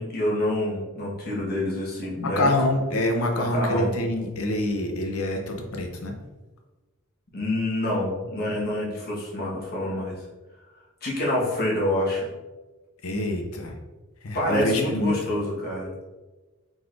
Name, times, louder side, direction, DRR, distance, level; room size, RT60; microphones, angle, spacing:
voice 1, 0.0-2.5 3.4-3.9 7.3-10.2 11.0-12.3 14.3-15.9, left 1 dB, 45° left, -5 dB, 1.4 m, -27 dB
voice 2, 2.2-6.1 13.0-13.8 14.2-15.1, left 1 dB, 75° left, 3 dB, 0.7 m, -26 dB
4.6 x 3.9 x 2.5 m, 1.2 s
head